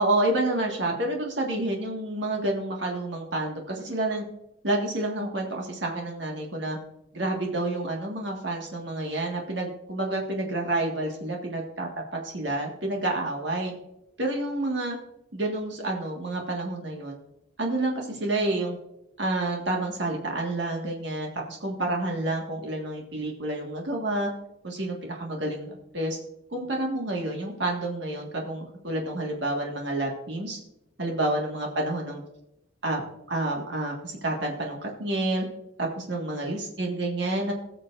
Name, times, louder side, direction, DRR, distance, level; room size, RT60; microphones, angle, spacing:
voice 1, 0.0-4.2 4.6-6.8 7.1-13.7 14.2-15.0 15.3-17.2 17.6-18.8 19.2-24.3 24.6-26.2 26.5-30.6 31.0-32.2 32.8-33.0 33.3-35.4 35.8-37.5, right 2 dB, 65° right, 0 dB, 1.7 m, -29 dB
18.0 x 6.9 x 2.5 m, 0.85 s
head